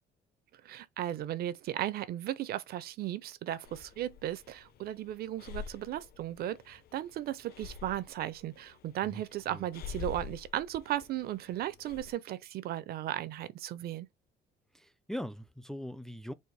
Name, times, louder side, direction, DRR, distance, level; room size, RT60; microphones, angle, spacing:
voice 1, 0.6-14.1, right 12 dB, 65° right, 0.7 m, -36 dB
Breathing, 3.6-12.1, left 7 dB, 65° left, 1.0 m, -47 dB
voice 2, 14.7-16.3, equal, 5° left, 0.5 m, -41 dB
4.3 x 2.6 x 4.7 m
cardioid pair, 110°, 17 cm